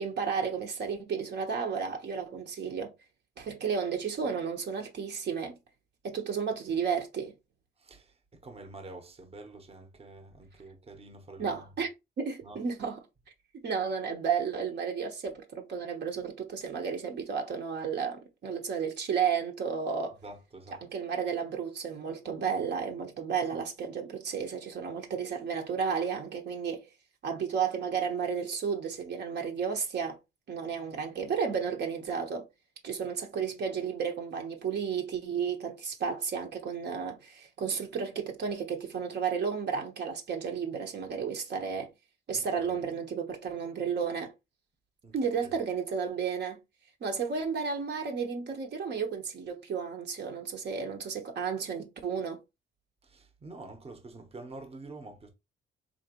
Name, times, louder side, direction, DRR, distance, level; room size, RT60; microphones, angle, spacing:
voice 1, 0.0-2.9 3.4-5.6 6.0-7.3 11.4-11.9 12.2-13.0 13.5-20.2 20.8-26.9 27.2-30.2 30.5-32.4 32.8-41.9 42.3-44.3 45.1-46.6 47.0-52.4, right 6 dB, 60° right, 1.0 m, -32 dB
voice 2, 7.8-11.6 12.4-12.6 20.2-20.8 23.5-23.6 42.3-42.4 45.0-45.5 53.0-55.3, right 2 dB, 30° right, 1.0 m, -47 dB
4.0 x 2.8 x 2.9 m
cardioid pair, 90°, 20 cm